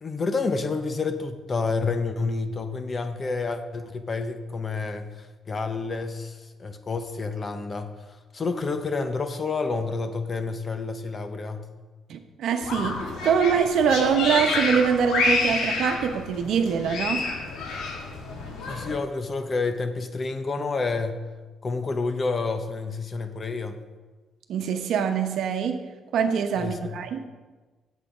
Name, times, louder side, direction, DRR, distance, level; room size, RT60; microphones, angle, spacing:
voice 1, 0.0-8.0 8.3-11.7 18.7-21.3 21.6-23.8 26.6-27.0, left 4 dB, 35° left, 8 dB, 0.9 m, -29 dB
voice 2, 12.1-17.2 24.5-25.8 26.1-27.2, right 7 dB, 75° right, 6 dB, 0.9 m, -24 dB
sound 1, 12.6-19.0, left 3 dB, 85° left, 1.6 m, -28 dB
8.4 x 7.5 x 5.0 m, 1.3 s
cardioid pair, 90°, 0 cm